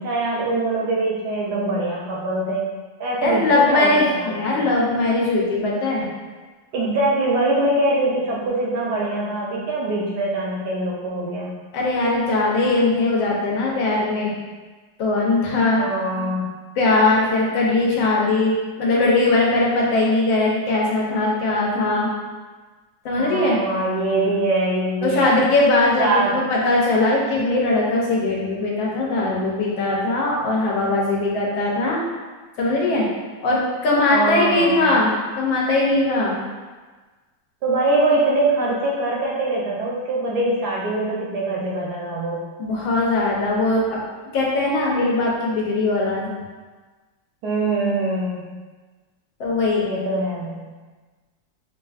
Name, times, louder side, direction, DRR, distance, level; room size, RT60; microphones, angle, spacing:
voice 1, 0.0-2.7 3.0-4.6 6.7-11.5 15.8-16.5 23.2-25.4 26.0-26.4 31.6-31.8 34.1-34.9 37.6-42.4 47.4-48.6 49.8-50.7, right 2 dB, 70° right, -4 dB, 1.0 m, -23 dB
voice 2, 3.2-6.1 11.7-14.3 15.0-15.8 16.8-22.1 23.0-23.6 25.0-32.0 32.6-33.1 33.4-36.4 42.6-44.0 44.3-46.3 49.4-49.9, left 2 dB, 85° left, -3 dB, 1.5 m, -20 dB
4.6 x 2.5 x 2.4 m, 1.3 s
omnidirectional pair, 2.1 m